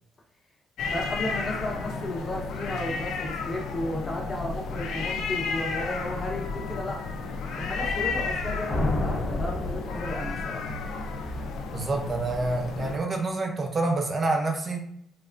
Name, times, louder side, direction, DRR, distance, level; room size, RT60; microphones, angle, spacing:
sound 1, 0.8-13.0, left 4 dB, 80° left, 0.4 m, -32 dB
voice 1, 0.9-7.0 7.5-10.6, left 1 dB, 25° left, -1 dB, 0.8 m, -34 dB
sound 2, 8.7-10.6, left 2 dB, 60° left, 0.8 m, -30 dB
voice 2, 11.7-14.8, right 2 dB, 35° right, 2 dB, 0.5 m, -27 dB
3.2 x 2.0 x 2.5 m, 0.72 s
cardioid pair, 90°, 0 cm